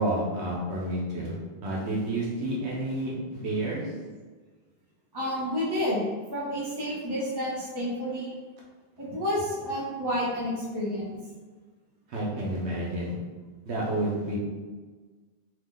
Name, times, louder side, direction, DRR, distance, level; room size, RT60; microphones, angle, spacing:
voice 1, 0.0-1.3 1.6-3.8 12.1-13.1 13.6-14.4, right 1 dB, 70° right, -4 dB, 0.9 m, -30 dB
voice 2, 5.1-6.0 6.3-8.3 9.0-11.2, equal, 25° right, -6 dB, 0.7 m, -30 dB
2.7 x 2.1 x 3.6 m, 1.4 s
omnidirectional pair, 1.2 m